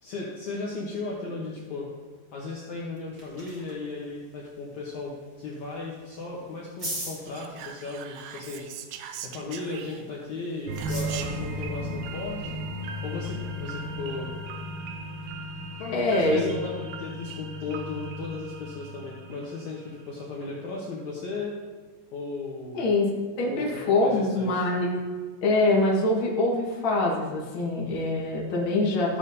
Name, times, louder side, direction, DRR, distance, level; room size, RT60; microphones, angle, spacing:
voice 1, 0.0-1.9 2.3-8.6 9.2-12.6 13.0-14.3 15.7-21.6 22.1-22.9 23.5-24.7, left 3 dB, 65° left, -4 dB, 2.1 m, -36 dB
sound 1, 2.7-15.3, right 1 dB, 30° right, 1.6 m, -45 dB
Whispering, 7.2-10.2 10.8-11.5, right 9 dB, 90° right, 2.6 m, -41 dB
sound 2, 10.7-20.0 20.4-20.5, equal, 75° right, 1.8 m, -35 dB
voice 2, 15.9-16.5 22.7-23.1 23.4-25.0 25.4-29.2, left 2 dB, 45° left, -3 dB, 1.8 m, -24 dB
14.0 x 7.0 x 2.8 m, 1.5 s
omnidirectional pair, 4.3 m